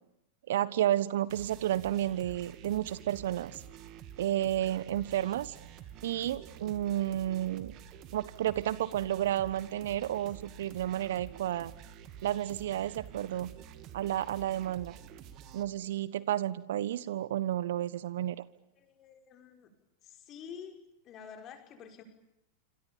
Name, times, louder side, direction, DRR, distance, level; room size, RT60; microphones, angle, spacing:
voice 1, 0.5-3.5 4.2-5.5 6.0-7.7 8.1-11.7 12.2-13.5 13.9-14.9 15.5-18.4, right 12 dB, 60° right, 19 dB, 1.2 m, -31 dB
sound 1, 1.3-15.6, right 9 dB, 40° right, 2.7 m, -49 dB
voice 2, 18.8-19.7 20.0-20.8 21.0-22.0, left 7 dB, 35° left, 5 dB, 5.6 m, -48 dB
27.0 x 27.0 x 7.2 m, 0.84 s
figure-of-eight pair, 90°, 0 cm